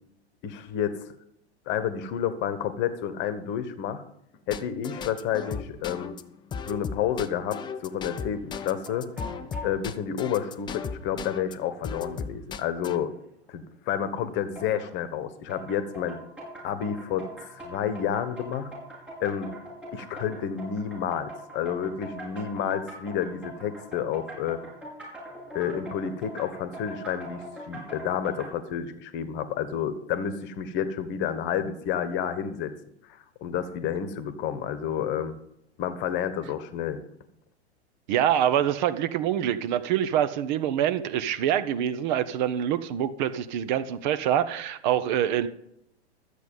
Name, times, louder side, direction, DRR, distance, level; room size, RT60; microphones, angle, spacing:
voice 1, 0.4-1.0 1.7-4.0 4.5-6.1 6.7-9.1 9.6-13.1 13.5-16.2 16.6-18.7 19.2-19.5 19.9-24.6 25.5-32.7 33.4-35.4 35.8-37.0, left 8 dB, 35° left, 12 dB, 1.2 m, -30 dB
sound 1, 4.5-11.5 11.8-13.0, left 6 dB, 15° left, 0.5 m, -35 dB
sound 2, 8.8-9.8 11.0-11.1 11.5-11.6 12.2-12.3 14.5-15.0 15.5-28.5, equal, 5° right, 5.5 m, -42 dB
voice 2, 38.1-45.5, right 10 dB, 45° right, 13 dB, 0.8 m, -25 dB
13.5 x 8.3 x 5.4 m, 0.77 s
figure-of-eight pair, 105°, 33 cm